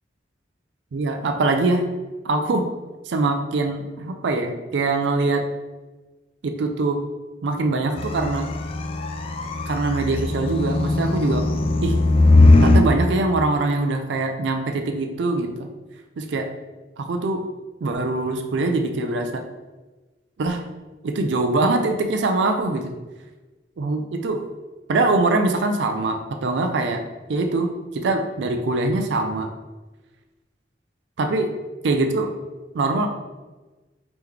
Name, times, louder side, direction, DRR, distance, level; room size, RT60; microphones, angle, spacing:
voice 1, 0.9-1.8 2.2-2.7 3.1-5.5 6.4-7.0 7.4-8.5 9.7-11.4 11.8-12.0 12.6-15.7 16.2-16.5 17.0-17.4 17.8-19.4 20.4-20.6 21.0-22.8 23.8-24.4 24.9-27.0 27.3-27.7 27.9-29.5 31.2-31.5 31.8-32.3 32.7-33.1, right 2 dB, 75° right, 5 dB, 0.4 m, -23 dB
sound 1, 8.0-12.8, left 2 dB, 30° left, 0.3 m, -18 dB
3.7 x 2.9 x 3.3 m, 1.2 s
head